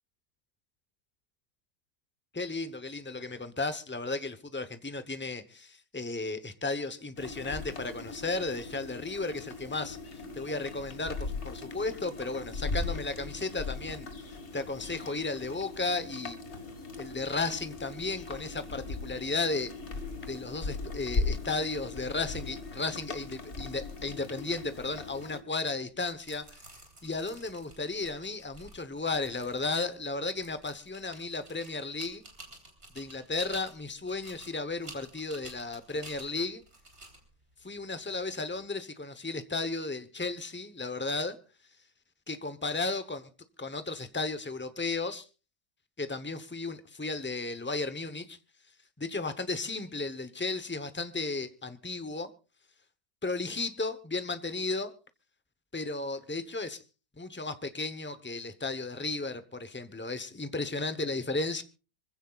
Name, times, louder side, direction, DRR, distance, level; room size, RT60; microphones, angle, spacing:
voice 1, 2.3-14.1 14.5-16.4 17.0-19.7 20.3-26.7 27.0-32.2 32.9-36.6 37.6-41.4 42.3-43.3 43.6-45.3 46.0-48.4 49.0-52.3 53.2-54.9 55.7-56.8 57.2-61.6, left 3 dB, 15° left, 0.4 m, -34 dB
sound 1, 7.2-25.4, left 3 dB, 40° left, 1.9 m, -39 dB
sound 2, 25.9-38.7, right 2 dB, 40° right, 3.8 m, -52 dB
25.0 x 15.5 x 2.4 m
omnidirectional pair, 1.9 m